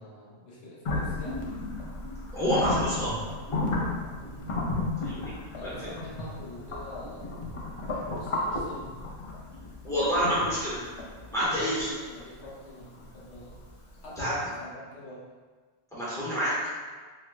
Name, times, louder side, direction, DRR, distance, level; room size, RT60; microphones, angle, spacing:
voice 1, 0.0-1.4 4.2-4.5 5.5-7.3 7.9-9.0 10.2-10.4 11.4-13.6 14.0-15.2, left 1 dB, 75° left, -7 dB, 1.1 m, -44 dB
sound 1, 0.8-13.7, left 2 dB, 50° left, 0.4 m, -33 dB
voice 2, 2.3-3.1 5.0-5.3 5.6-5.7 9.8-10.7 11.3-11.9 14.2-14.3 15.9-16.5, equal, 5° left, -12 dB, 1.2 m, -27 dB
3.2 x 3.0 x 2.3 m, 1.4 s
omnidirectional pair, 1.1 m